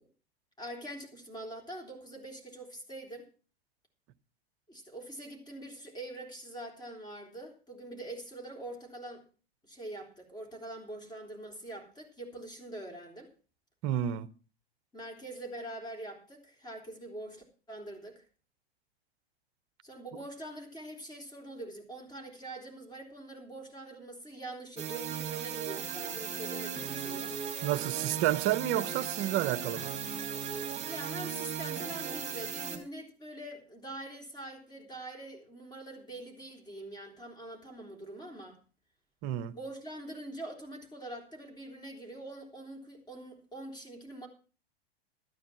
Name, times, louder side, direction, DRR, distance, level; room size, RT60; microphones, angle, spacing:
voice 1, 0.6-3.3 4.7-9.2 9.6-13.3 14.9-18.2 19.8-27.3 30.9-38.6 39.5-44.3, right 1 dB, 15° left, 3.6 m, -44 dB
voice 2, 13.8-14.3 27.6-29.9 39.2-39.6, right 12 dB, 40° right, 0.8 m, -30 dB
sound 1, 24.8-32.8, right 8 dB, 20° right, 2.7 m, -37 dB
12.5 x 9.6 x 6.0 m
figure-of-eight pair, 95°, 31 cm